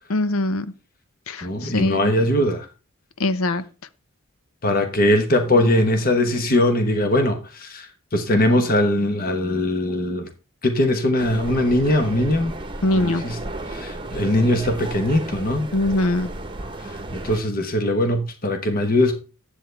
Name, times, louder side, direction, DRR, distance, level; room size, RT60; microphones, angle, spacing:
voice 1, 0.1-0.7 1.3-2.1 3.2-3.6 12.8-13.2 15.7-16.3, left 2 dB, 70° left, 0.7 m, -22 dB
voice 2, 1.4-2.7 4.6-10.3 10.6-12.5 12.9-13.4 13.7-15.7 16.8-19.2, left 1 dB, 40° left, 1.1 m, -21 dB
sound 1, 11.2-17.4, right 2 dB, 20° right, 1.0 m, -33 dB
10.0 x 8.1 x 3.3 m
head